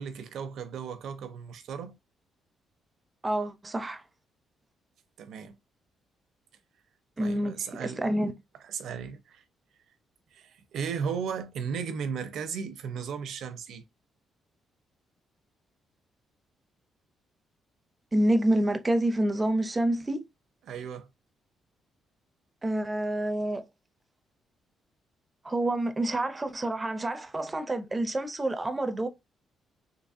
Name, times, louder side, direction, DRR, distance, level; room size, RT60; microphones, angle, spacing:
voice 1, 0.0-2.0 5.2-5.6 7.2-8.1 8.6-9.4 10.3-13.8 20.6-21.1, right 6 dB, 60° right, 0.6 m, -35 dB
voice 2, 3.2-4.0 7.2-7.5 7.8-8.3 18.1-20.2 22.6-23.6 25.4-29.1, right 1 dB, 15° right, 0.4 m, -27 dB
3.9 x 3.0 x 2.4 m
cardioid pair, 175°, 0 cm